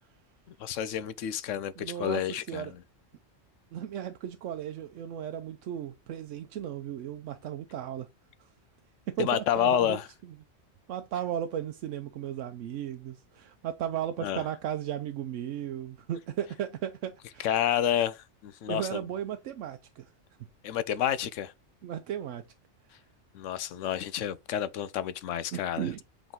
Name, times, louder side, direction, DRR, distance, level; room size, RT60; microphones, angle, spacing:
voice 1, 0.6-2.8 9.2-10.1 14.2-14.4 17.4-19.0 20.6-21.5 23.3-25.9, left 10 dB, 85° left, 1.0 m, -29 dB
voice 2, 1.8-2.7 3.7-8.1 9.1-10.0 10.2-10.3 10.9-17.6 18.7-20.1 21.8-22.4 25.5-26.0, right 10 dB, 85° right, 1.0 m, -35 dB
8.0 x 3.7 x 3.6 m
omnidirectional pair, 1.3 m